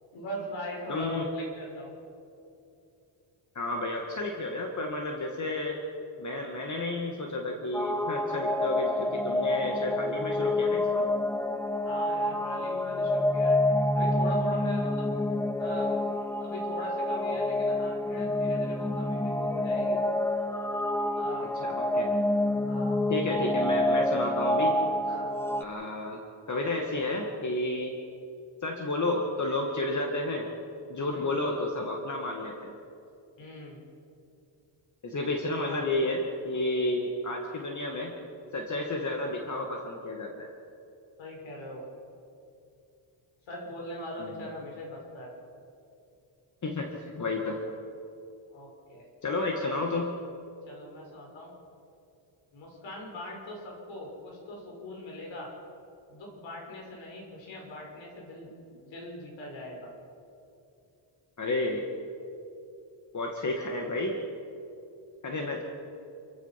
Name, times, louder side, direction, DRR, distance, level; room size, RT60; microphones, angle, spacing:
voice 1, 0.1-2.0 11.8-13.6 13.9-15.1 15.6-15.9 16.4-20.0 21.1-21.5 22.7-23.0 25.1-25.4 31.1-31.4 33.4-33.8 35.6-35.8 41.2-41.8 43.5-45.3 48.5-49.0 50.6-51.5 52.5-55.5 56.1-58.5 58.8-59.9, left 1 dB, 75° left, -1 dB, 6.5 m, -41 dB
voice 2, 0.9-1.3 3.6-5.8 6.2-11.1 21.4-22.1 23.1-24.8 25.6-26.2 26.5-27.9 28.6-30.5 30.9-32.7 35.0-38.1 38.5-40.5 44.2-44.5 46.6-46.9 47.2-47.6 49.2-50.1 61.4-61.9 63.1-64.2 65.2-65.6, left 2 dB, 40° left, 2 dB, 2.1 m, -31 dB
sound 1, 7.7-25.6, left 1 dB, 5° left, 0.6 m, -28 dB
29.0 x 15.5 x 6.0 m, 2.7 s
cardioid pair, 120°, 46 cm